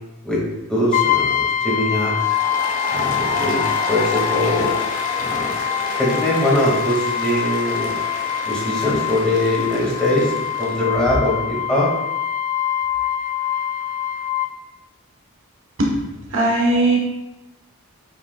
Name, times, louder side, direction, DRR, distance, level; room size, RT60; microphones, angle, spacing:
voice 1, 0.7-2.1 2.9-4.8 5.2-8.0 8.4-11.9, left 1 dB, 5° left, -6 dB, 2.2 m, -22 dB
Brass instrument, 0.9-14.5, left 9 dB, 35° left, 0.3 m, -24 dB
Applause, 2.1-10.8, left 3 dB, 65° left, 1.3 m, -29 dB
voice 2, 15.8-17.0, right 2 dB, 55° right, -1 dB, 1.3 m, -19 dB
8.5 x 6.0 x 2.4 m, 1.0 s
head